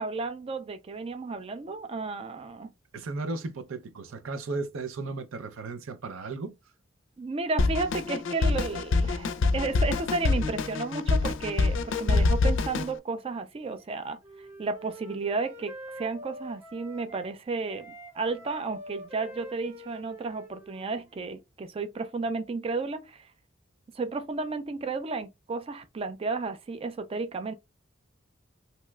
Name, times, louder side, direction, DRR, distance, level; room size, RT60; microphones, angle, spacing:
voice 1, 0.0-2.7 7.2-14.2 14.6-23.2 23.9-27.5, right 3 dB, 30° right, 0.4 m, -33 dB
voice 2, 2.9-6.6, right 3 dB, 85° right, 0.5 m, -35 dB
Drum kit, 7.6-12.9, left 3 dB, 65° left, 0.4 m, -25 dB
Wind instrument woodwind instrument, 13.7-17.3 17.7-21.4, equal, 10° right, 0.9 m, -46 dB
2.8 x 2.2 x 3.1 m
head